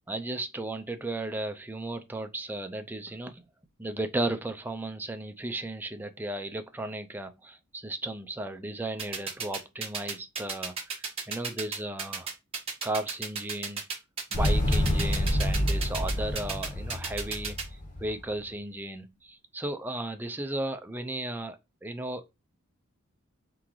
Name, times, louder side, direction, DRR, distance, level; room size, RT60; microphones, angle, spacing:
voice 1, 0.1-3.4 3.8-10.8 11.3-12.3 12.8-13.8 14.3-17.6 18.0-22.3, right 1 dB, 10° right, 0.4 m, -35 dB
sound 1, 9.0-17.6, right 5 dB, 25° right, 1.3 m, -33 dB
Motorcycle, 14.3-18.3, left 1 dB, 35° left, 1.0 m, -28 dB
3.8 x 3.7 x 3.0 m
head